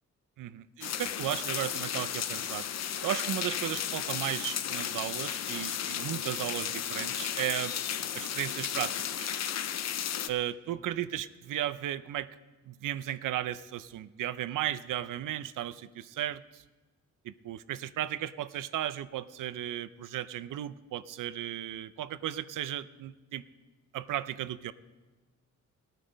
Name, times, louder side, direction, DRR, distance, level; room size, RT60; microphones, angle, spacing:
voice 1, 0.4-2.7 3.0-7.8 8.1-9.3 10.3-12.3 12.6-16.6 17.2-23.4 23.9-24.7, right 12 dB, 85° right, 15 dB, 0.6 m, -35 dB
sound 1, 0.8-10.3, left 9 dB, 60° left, 0.6 m, -34 dB
18.0 x 9.1 x 5.1 m, 1.3 s
cardioid pair, 110°, 31 cm